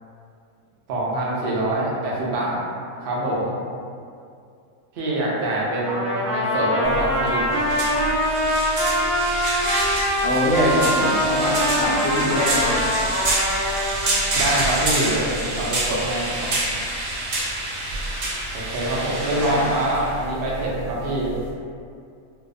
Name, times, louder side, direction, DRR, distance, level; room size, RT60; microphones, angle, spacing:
voice 1, 0.9-2.6 3.0-3.6 4.9-7.6 14.4-16.5 18.5-21.3, right 1 dB, 90° right, -5 dB, 0.5 m, -25 dB
Trumpet, 5.8-14.3, equal, 40° right, 0.8 m, -23 dB
sound 1, 6.8-21.5, right 1 dB, 70° right, 0.9 m, -27 dB
voice 2, 10.2-12.8 19.4-19.7, left 1 dB, 65° left, -5 dB, 0.8 m, -23 dB
2.7 x 2.0 x 2.4 m, 2.4 s
omnidirectional pair, 1.6 m